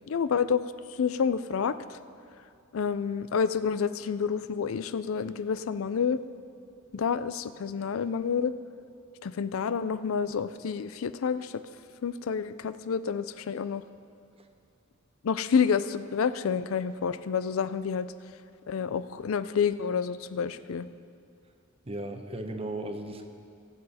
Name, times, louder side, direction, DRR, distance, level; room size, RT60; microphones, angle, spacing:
voice 1, 0.1-0.7 1.0-2.0 2.7-6.2 6.9-8.5 9.2-11.5 12.0-13.8 15.2-18.1 18.7-20.9, left 6 dB, 75° left, 14 dB, 0.4 m, -29 dB
voice 2, 21.8-23.3, right 1 dB, 30° right, 5 dB, 0.9 m, -36 dB
23.0 x 7.8 x 4.2 m, 2.5 s
head